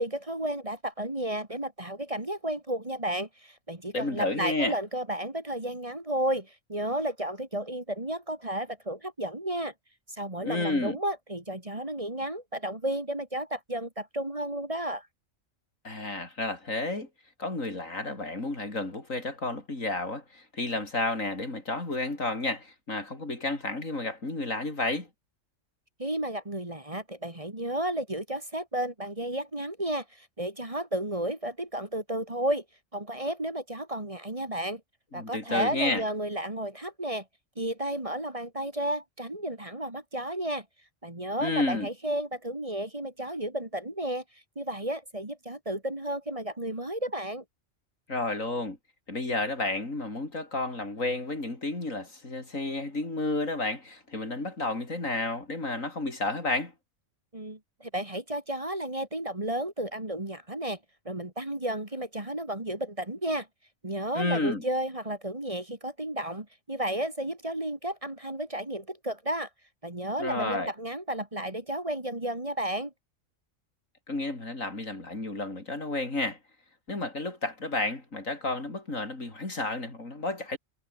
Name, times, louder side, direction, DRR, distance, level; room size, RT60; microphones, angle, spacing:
voice 1, 0.0-9.7 10.1-15.1 26.0-32.6 32.9-34.8 35.1-37.2 37.6-40.6 41.0-44.2 44.6-47.4 57.3-60.8 61.0-63.5 63.8-69.5 69.8-72.9, right 1 dB, 25° right, 2.9 m, -32 dB
voice 2, 3.9-4.8 10.4-11.0 15.8-17.1 17.4-25.1 35.1-36.0 41.4-41.9 48.1-48.8 49.1-56.7 64.1-64.6 70.2-70.7 74.1-76.4 76.9-80.6, left 2 dB, 75° left, 5.2 m, -31 dB
omnidirectional pair, 1.4 m